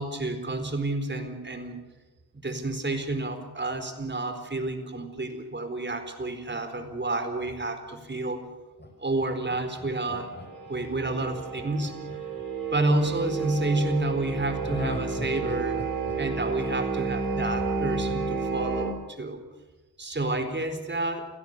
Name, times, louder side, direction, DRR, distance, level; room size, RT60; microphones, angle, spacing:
voice 1, 0.0-1.8 2.4-8.5 9.0-10.3 10.7-12.0 12.7-15.9 16.2-19.4 20.0-21.3, right 2 dB, 30° right, 7 dB, 4.3 m, -30 dB
Laughter, 8.8-13.0 14.6-17.6 17.9-18.0, left 1 dB, 25° left, 5.9 m, -41 dB
sound 1, 10.3-18.9, right 4 dB, 65° right, 5.7 m, -31 dB
28.5 x 17.0 x 6.8 m, 1.2 s
cardioid pair, 75°, 38 cm